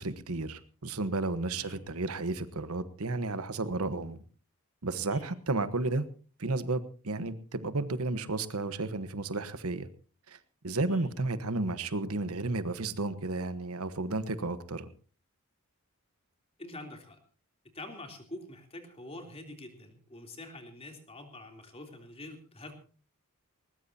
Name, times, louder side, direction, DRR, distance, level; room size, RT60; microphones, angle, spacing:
voice 1, 0.0-4.2 4.8-6.1 6.4-9.9 10.3-10.4 10.6-14.9, right 2 dB, 75° right, 13 dB, 1.2 m, -32 dB
voice 2, 16.6-17.2 17.7-22.8, left 1 dB, 25° left, 4 dB, 3.2 m, -46 dB
20.0 x 20.0 x 2.8 m, 0.39 s
head